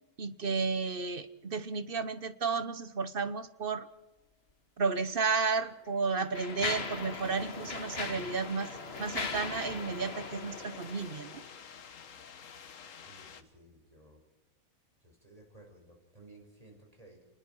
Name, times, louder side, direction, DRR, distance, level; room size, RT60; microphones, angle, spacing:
voice 1, 0.2-3.9 4.8-8.7 9.0-11.4, right 4 dB, 45° right, 13 dB, 1.0 m, -32 dB
Mechanisms, 5.0-5.1 5.8-11.6, left 4 dB, 45° left, 1.9 m, -39 dB
sound 1, 7.4-13.4, left 7 dB, 65° left, 1.5 m, -50 dB
voice 2, 13.0-14.2 15.0-17.3, right 2 dB, 25° right, 1 dB, 5.3 m, -57 dB
28.0 x 20.5 x 4.5 m, 1.0 s
omnidirectional pair, 1.5 m